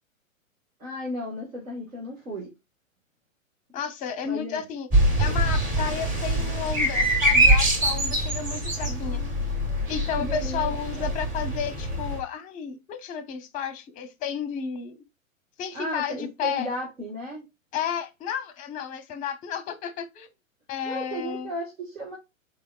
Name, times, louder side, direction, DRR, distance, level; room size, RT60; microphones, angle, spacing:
voice 1, 0.8-2.5 4.2-4.6 8.8-9.6 10.2-11.1 15.7-17.4 20.8-22.2, equal, 75° right, 1.6 m, -35 dB
voice 2, 3.7-4.9 5.2-9.2 9.9-15.0 15.6-16.7 17.7-20.3 20.7-21.5, left 8 dB, 20° left, 0.6 m, -32 dB
sound 1, 4.9-12.2, right 1 dB, 20° right, 1.2 m, -24 dB
4.2 x 3.4 x 2.3 m
figure-of-eight pair, 110°, 41 cm